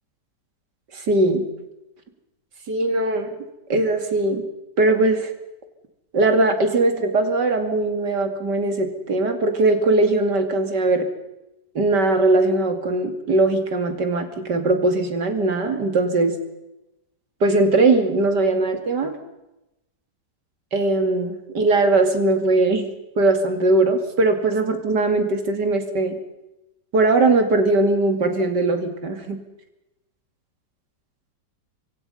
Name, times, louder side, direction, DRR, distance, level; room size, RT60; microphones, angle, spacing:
voice 1, 0.9-1.5 2.7-3.3 3.7-4.4 4.8-5.3 6.1-11.1 11.7-16.4 17.4-19.1 20.7-22.9 23.2-26.2 26.9-29.4, right 2 dB, 80° right, 6 dB, 3.1 m, -20 dB
25.0 x 25.0 x 5.6 m, 0.95 s
omnidirectional pair, 1.8 m